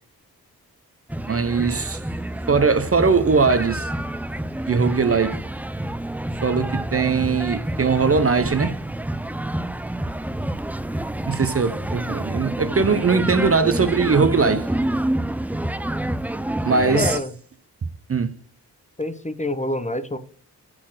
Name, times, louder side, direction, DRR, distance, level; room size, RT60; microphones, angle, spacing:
sound 1, 1.1-17.2, right 1 dB, 5° right, 0.3 m, -28 dB
voice 1, 1.3-2.0 2.5-3.9 4.7-5.4 6.4-8.8 11.2-14.7 16.6-17.2 18.1-18.3, right 5 dB, 35° right, 0.6 m, -20 dB
voice 2, 16.9-17.3 19.0-20.2, left 1 dB, 20° left, 0.7 m, -26 dB
5.9 x 4.2 x 6.3 m
cardioid pair, 60°, 38 cm